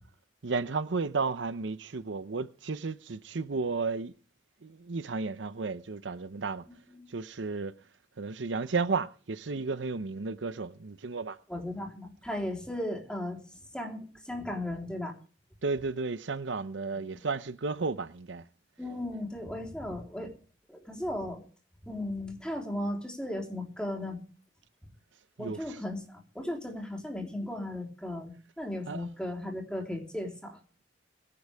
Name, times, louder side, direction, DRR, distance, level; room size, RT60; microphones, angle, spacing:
voice 1, 0.4-4.1 4.6-6.6 7.1-7.7 8.2-11.4 15.6-18.4 25.4-25.8 28.9-29.0, right 4 dB, 85° right, 0.8 m, -33 dB
voice 2, 11.5-13.4 13.7-15.1 18.8-20.3 20.7-21.4 21.8-24.2 25.4-30.6, left 1 dB, 5° left, 3.6 m, -36 dB
22.0 x 11.0 x 3.5 m
head